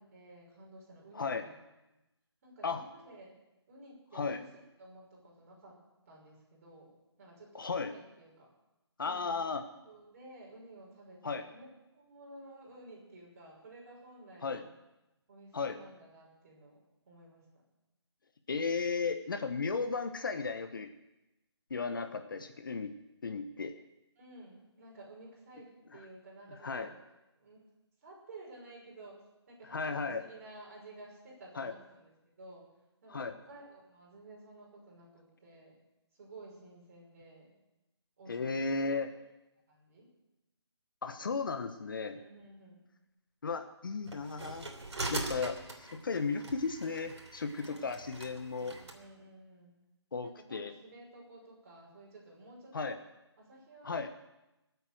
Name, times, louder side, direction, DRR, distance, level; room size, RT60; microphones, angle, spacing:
voice 1, 0.0-1.5 2.4-3.4 3.7-4.4 4.8-5.8 6.1-8.5 9.0-11.7 11.9-14.7 15.3-16.8 17.1-17.4 24.2-27.0 27.4-27.7 28.0-32.7 33.0-35.8 36.1-37.5 38.2-39.0 39.7-40.1 42.1-42.8 47.6-49.7 50.2-53.0 53.4-54.1, right 2 dB, 30° right, -3 dB, 6.0 m, -53 dB
voice 2, 7.5-7.9 9.0-9.6 11.2-11.4 14.4-14.6 15.5-15.8 18.5-20.9 21.7-22.9 23.2-23.8 26.6-26.9 29.7-30.2 31.5-31.7 33.1-33.4 38.3-39.1 41.0-42.2 43.4-44.7 45.1-48.8 50.1-50.7 52.7-53.0 53.8-54.1, left 4 dB, 50° left, 8 dB, 1.1 m, -35 dB
sound 1, 44.1-49.0, right 2 dB, 75° right, 3.2 m, -42 dB
21.0 x 8.3 x 7.8 m, 0.96 s
figure-of-eight pair, 165°, 15 cm